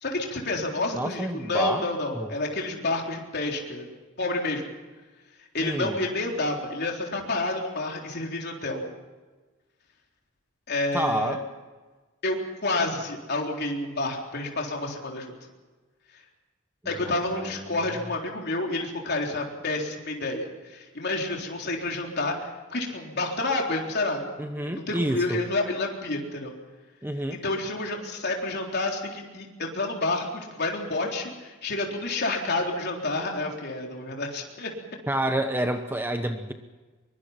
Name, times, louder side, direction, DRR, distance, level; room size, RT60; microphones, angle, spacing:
voice 1, 0.0-3.9 4.2-4.6 5.5-8.8 10.7-11.4 12.2-15.3 16.9-24.2 24.6-26.5 27.3-34.7, left 2 dB, 50° left, 0 dB, 3.8 m, -29 dB
voice 2, 0.9-1.8 2.1-2.3 5.6-6.0 10.9-11.4 16.8-17.9 24.4-25.4 27.0-27.4 35.1-36.5, right 1 dB, 10° right, 7 dB, 1.0 m, -29 dB
23.5 x 23.0 x 5.9 m, 1.3 s
head